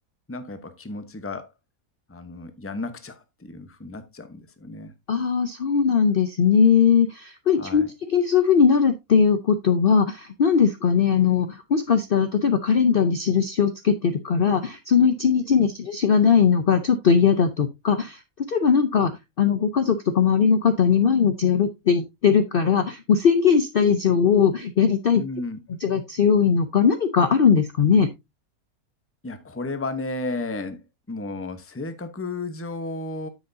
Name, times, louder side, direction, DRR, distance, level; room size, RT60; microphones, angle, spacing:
voice 1, 0.3-1.5 2.1-4.9 7.5-7.9 15.6-15.7 25.2-25.6 29.2-33.3, left 2 dB, 10° left, 0.8 m, -33 dB
voice 2, 5.1-18.2 18.5-25.2 25.8-28.1, left 6 dB, 50° left, 0.7 m, -20 dB
9.4 x 7.8 x 2.7 m
omnidirectional pair, 1.5 m